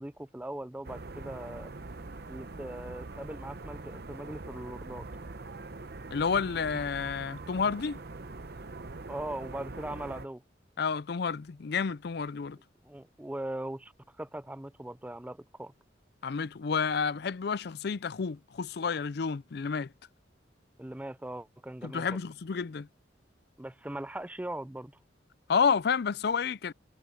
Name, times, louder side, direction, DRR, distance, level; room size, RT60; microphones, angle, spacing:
voice 1, 0.0-1.7 2.3-5.1 9.1-10.4 12.8-15.7 20.8-22.2 23.6-24.9, right 1 dB, 10° right, 0.5 m, -40 dB
sound 1, 0.8-10.3, right 3 dB, 55° right, 0.9 m, -43 dB
voice 2, 6.1-8.0 10.8-12.6 16.2-19.9 21.8-22.9 25.5-26.7, left 5 dB, 55° left, 0.4 m, -30 dB
head